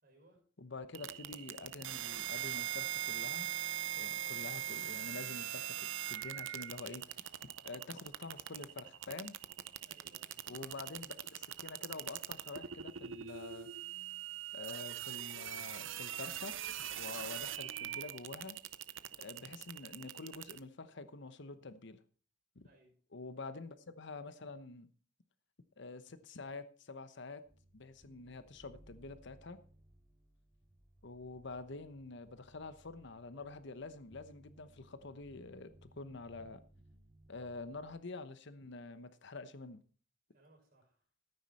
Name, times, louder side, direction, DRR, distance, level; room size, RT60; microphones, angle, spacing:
voice 1, 0.0-0.5 9.8-10.5 22.6-23.0 40.3-41.1, right 1 dB, 50° right, 0 dB, 5.8 m, -66 dB
voice 2, 0.6-3.5 4.0-9.4 10.5-13.7 14.5-16.6 17.0-18.6 19.2-22.0 22.6-22.7 23.1-24.9 25.8-27.4 27.7-29.6 31.0-36.6 37.3-39.8, left 3 dB, 65° left, 12 dB, 1.0 m, -47 dB
sound 1, 0.9-20.6, right 12 dB, 75° right, 0.7 m, -42 dB
sound 2, 27.4-38.0, right 1 dB, 15° right, 2.2 m, -63 dB
14.0 x 9.6 x 4.3 m, 0.41 s
head